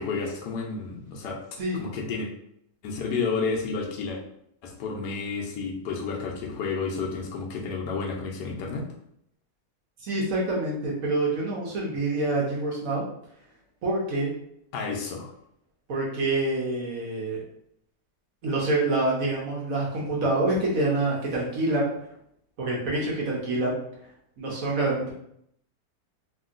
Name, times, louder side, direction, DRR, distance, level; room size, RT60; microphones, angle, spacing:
voice 1, 0.0-1.4 1.7-2.3 2.8-4.2 4.6-8.8 14.7-15.3, left 4 dB, 75° left, 0 dB, 1.1 m, -31 dB
voice 2, 10.0-13.0 13.8-14.3 15.9-17.4 18.4-21.9 22.6-23.8 24.4-25.1, right 2 dB, 60° right, -4 dB, 1.1 m, -26 dB
2.9 x 2.7 x 2.4 m, 0.73 s
omnidirectional pair, 1.8 m